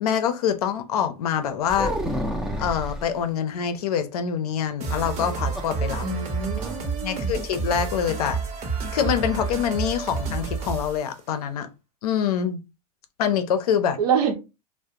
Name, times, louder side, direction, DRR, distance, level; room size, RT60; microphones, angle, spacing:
voice 1, 0.0-1.9 2.6-6.0 7.0-8.4 8.9-11.7 12.0-12.6 13.2-14.0, left 8 dB, 75° left, 0.5 m, -25 dB
sound 1, 1.7-3.1 4.8-5.8 6.1-6.2 6.6-6.8, equal, 5° right, 0.4 m, -29 dB
sound 2, 4.8-11.1, right 5 dB, 35° right, 0.8 m, -30 dB
voice 2, 6.0-7.3 14.0-14.3, right 6 dB, 75° right, 0.8 m, -26 dB
2.3 x 2.0 x 2.8 m
hypercardioid pair, 115°, 20 cm